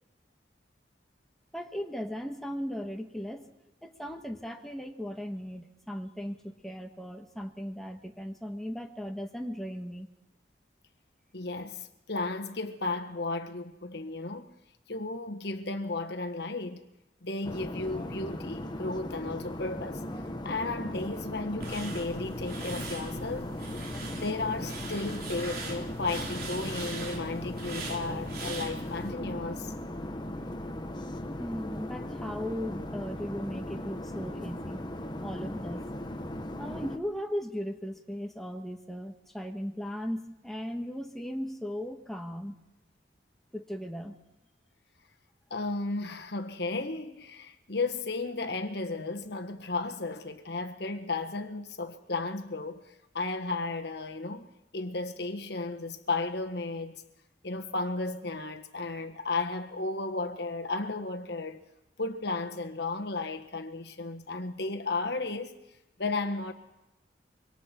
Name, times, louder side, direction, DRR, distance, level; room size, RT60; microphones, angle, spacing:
voice 1, 1.5-3.5 3.8-10.1 31.4-34.8 35.2-35.8 36.6-42.6 43.5-44.2, equal, ahead, 1.5 m, -37 dB
voice 2, 11.3-14.4 14.9-16.8 17.2-20.0 20.4-23.5 24.1-29.7 45.5-52.8 53.1-54.5 54.7-57.0 57.4-61.6 62.0-65.6 66.0-66.5, left 3 dB, 65° left, 1.5 m, -34 dB
sound 1, 17.4-37.0, left 1 dB, 25° left, 1.3 m, -38 dB
sound 2, 21.6-29.1, right 2 dB, 55° right, 3.7 m, -41 dB
25.5 x 24.0 x 4.5 m
head